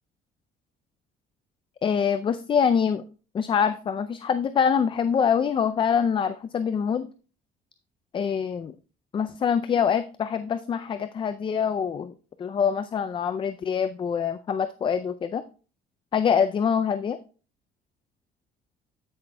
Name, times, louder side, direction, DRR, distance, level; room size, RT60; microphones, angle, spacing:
voice 1, 1.8-3.0 3.3-7.1 8.1-8.7 9.1-12.1 12.4-15.4 16.1-17.2, left 7 dB, 30° left, 11 dB, 0.4 m, -25 dB
13.5 x 6.1 x 2.2 m, 0.38 s
cardioid pair, 110°, 17 cm